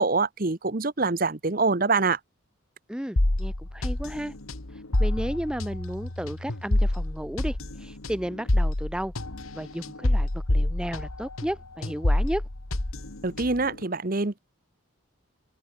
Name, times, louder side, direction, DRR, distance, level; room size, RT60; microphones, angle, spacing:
voice 1, 0.0-2.2 13.2-14.4, right 3 dB, 40° right, 1.1 m, -25 dB
voice 2, 2.9-4.3 4.7-9.1 9.5-12.4, equal, 5° right, 0.6 m, -33 dB
sound 1, 3.2-11.5 11.8-13.7, left 1 dB, 85° left, 2.1 m, -27 dB
head